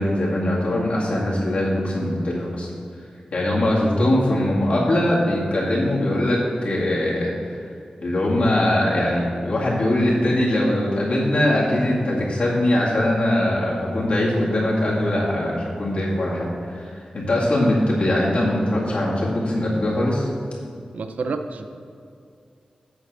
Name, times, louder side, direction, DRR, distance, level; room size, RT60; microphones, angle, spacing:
voice 1, 0.0-2.7 3.3-7.3 8.0-20.3, left 1 dB, 60° left, -6 dB, 2.1 m, -21 dB
voice 2, 20.9-21.7, right 4 dB, 80° right, 7 dB, 0.5 m, -28 dB
8.3 x 4.2 x 6.6 m, 2.4 s
wide cardioid pair, 150°, 2 cm